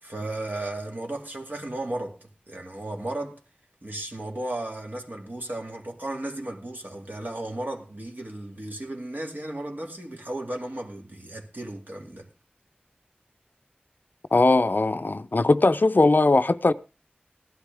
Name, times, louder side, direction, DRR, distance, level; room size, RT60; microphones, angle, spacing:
voice 1, 0.0-3.4 3.8-12.3, right 1 dB, 65° right, 2.3 m, -35 dB
voice 2, 14.3-16.7, left 2 dB, 65° left, 0.6 m, -20 dB
15.5 x 11.5 x 3.4 m
wide cardioid pair, 45°, 3 cm